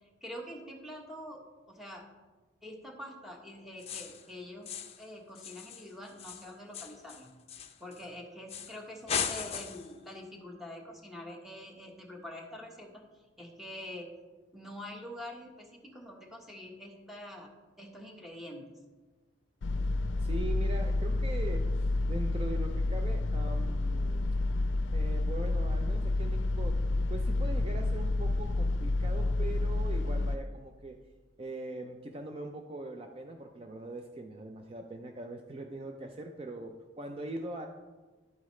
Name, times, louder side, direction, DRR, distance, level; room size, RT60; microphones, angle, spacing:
voice 1, 0.2-1.4 1.7-2.1 2.6-4.7 5.0-7.3 7.8-13.0 13.4-14.1 14.5-17.5 17.8-18.7, left 1 dB, ahead, 0 dB, 1.2 m, -45 dB
sound 1, 3.8-4.3 4.7-5.1 5.4-8.1 8.5-8.8 9.1-9.9, left 7 dB, 35° left, 0.6 m, -37 dB
sound 2, 19.6-30.4, left 2 dB, 80° left, 0.4 m, -29 dB
voice 2, 20.2-24.3 24.9-26.8 27.1-31.0 31.4-37.7, right 2 dB, 30° right, 4 dB, 0.5 m, -41 dB
11.0 x 8.5 x 3.2 m, 1.3 s
head